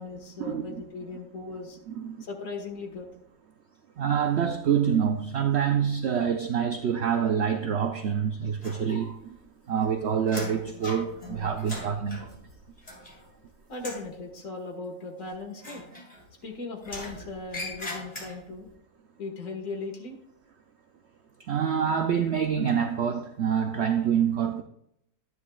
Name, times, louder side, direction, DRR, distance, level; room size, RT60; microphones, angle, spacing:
voice 1, 0.0-1.8 2.2-3.1 13.7-15.8 16.4-18.7 19.2-20.2, left 3 dB, 65° left, 2.1 m, -38 dB
voice 2, 4.0-9.4 9.7-12.3 21.4-24.6, right 8 dB, 60° right, 0.8 m, -26 dB
sound 1, 8.6-9.4 9.7-13.4 13.7-14.1 15.6-16.4 16.8-18.6, left 1 dB, 25° left, 2.6 m, -40 dB
12.0 x 9.6 x 2.4 m
omnidirectional pair, 1.5 m